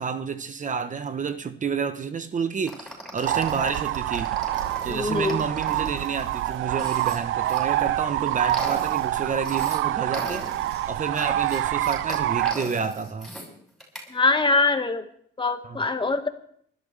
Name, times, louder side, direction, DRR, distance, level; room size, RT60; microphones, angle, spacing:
voice 1, 0.0-4.4 4.8-10.4 10.9-13.3 15.6-15.8, right 6 dB, 40° right, 0.9 m, -29 dB
sound 1, 2.7-7.6 8.1-9.8 10.1-13.5 13.8-14.1, equal, ahead, 6.8 m, -39 dB
sound 2, 3.2-12.5, right 14 dB, 80° right, 0.5 m, -26 dB
voice 2, 4.9-5.4 14.1-15.0 15.4-16.3, left 3 dB, 25° left, 1.6 m, -23 dB
28.5 x 12.5 x 3.4 m
cardioid pair, 90°, 20 cm